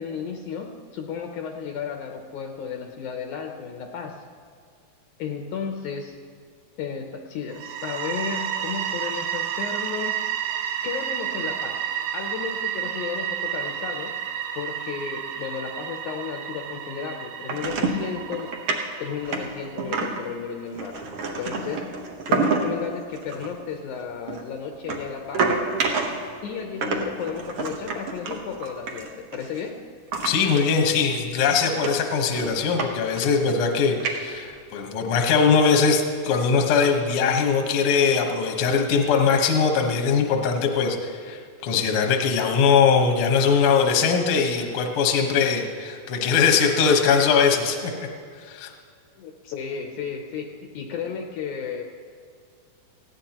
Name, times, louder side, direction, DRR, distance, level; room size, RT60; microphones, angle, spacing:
voice 1, 0.0-4.2 5.2-6.2 6.8-10.2 10.8-11.8 12.1-14.2 14.6-18.5 19.0-21.0 21.4-21.9 22.3-25.5 26.4-29.8 49.2-51.8, left 6 dB, 75° left, 3 dB, 2.0 m, -33 dB
sound 1, 7.5-20.2, right 10 dB, 90° right, 2.5 m, -31 dB
sound 2, 17.5-18.0 18.3-18.8 19.2-20.3 20.7-22.8 23.2-23.5 24.3-26.3 26.8-29.6 30.1-30.6 30.9-31.0 31.5-31.6 31.8-32.9 33.2-33.6 34.0-34.6, right 4 dB, 60° right, 1.6 m, -28 dB
voice 2, 30.2-47.9 48.4-48.7, left 5 dB, 55° left, 2 dB, 1.6 m, -21 dB
19.5 x 15.5 x 3.0 m, 2.2 s
omnidirectional pair, 4.0 m